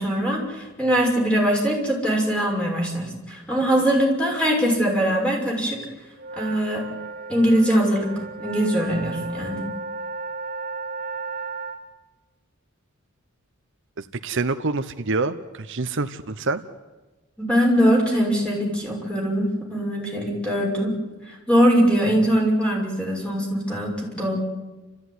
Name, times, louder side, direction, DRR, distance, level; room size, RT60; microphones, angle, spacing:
voice 1, 0.0-5.8 6.4-6.8 7.3-8.1 8.4-9.6 17.4-20.9 21.3-24.4, equal, 5° left, -1 dB, 6.1 m, -22 dB
sound 1, 6.2-11.8, right 3 dB, 45° right, 3.0 m, -34 dB
voice 2, 14.0-16.6, right 3 dB, 65° right, 10 dB, 0.9 m, -26 dB
30.0 x 14.5 x 9.6 m, 1.2 s
head